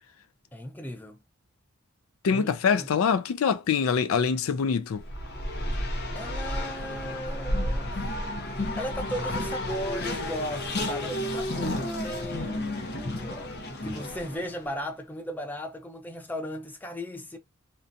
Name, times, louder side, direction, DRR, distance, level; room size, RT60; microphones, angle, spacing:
voice 1, 0.5-1.2 2.3-2.9 6.1-8.0 8.7-12.6 13.1-17.4, equal, 10° left, 0.4 m, -36 dB
voice 2, 2.2-5.0, left 6 dB, 75° left, 0.4 m, -24 dB
Race car auto racing, 5.0-14.6, left 1 dB, 55° left, 0.7 m, -32 dB
2.7 x 2.2 x 2.5 m
head